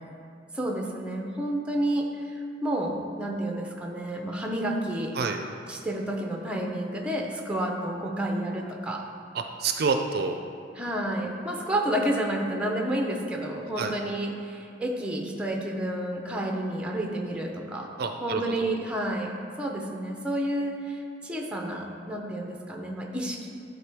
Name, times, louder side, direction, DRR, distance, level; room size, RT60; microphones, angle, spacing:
voice 1, 0.5-5.2 5.7-9.0 10.8-17.9 18.2-23.5, right 1 dB, 5° right, 1 dB, 0.7 m, -30 dB
voice 2, 9.3-10.4 13.8-13.9 18.0-18.7, right 4 dB, 60° right, 5 dB, 0.4 m, -28 dB
11.0 x 4.0 x 3.5 m, 2.4 s
head